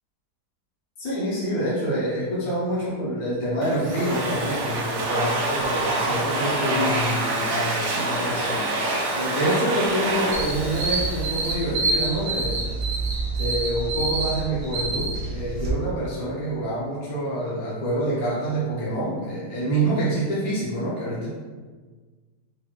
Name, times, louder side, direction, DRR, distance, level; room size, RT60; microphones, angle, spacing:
voice 1, 1.0-8.8 9.1-12.6 13.4-21.3, right 1 dB, 65° left, -8 dB, 1.4 m, -27 dB
Domestic sounds home sounds, 3.6-12.1, right 2 dB, 80° right, 1.3 m, -26 dB
sound 1, 10.3-15.7, right 3 dB, 55° right, 1.1 m, -27 dB
4.8 x 2.2 x 3.0 m, 1.4 s
omnidirectional pair, 1.7 m